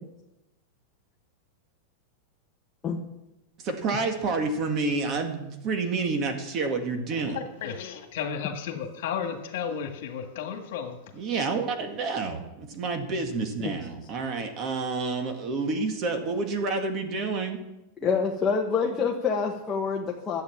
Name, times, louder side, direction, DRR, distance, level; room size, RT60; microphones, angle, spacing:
voice 1, 3.6-7.4 11.1-17.6, right 4 dB, 30° right, 5 dB, 1.9 m, -29 dB
voice 2, 7.3-11.0, left 7 dB, 65° left, 5 dB, 2.0 m, -33 dB
voice 3, 18.0-20.4, left 5 dB, 15° left, -1 dB, 1.2 m, -26 dB
12.0 x 8.7 x 7.3 m, 0.94 s
supercardioid pair, 160°, 0 cm